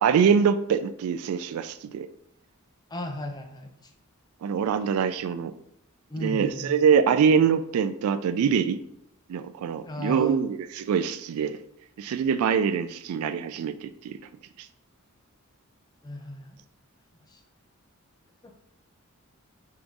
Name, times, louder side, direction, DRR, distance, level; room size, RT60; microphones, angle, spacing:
voice 1, 0.0-2.1 4.4-5.5 6.2-8.8 9.3-11.6 12.0-14.2, right 6 dB, 75° right, 15 dB, 0.3 m, -24 dB
voice 2, 2.9-3.9 6.1-6.8 9.8-10.4 16.0-16.6 17.1-17.4 18.4-18.5, left 1 dB, 20° left, 3 dB, 0.5 m, -36 dB
3.7 x 2.6 x 4.5 m, 0.76 s
head